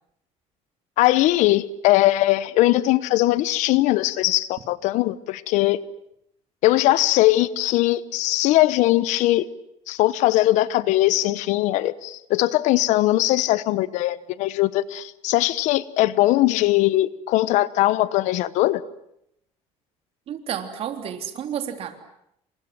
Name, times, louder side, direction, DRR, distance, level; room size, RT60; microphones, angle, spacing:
voice 1, 1.0-5.8 6.6-9.5 9.9-18.8, left 16 dB, 85° left, 1.1 m, -20 dB
voice 2, 20.3-22.0, right 9 dB, 55° right, 3.5 m, -31 dB
28.0 x 27.0 x 7.8 m
cardioid pair, 140°, 12 cm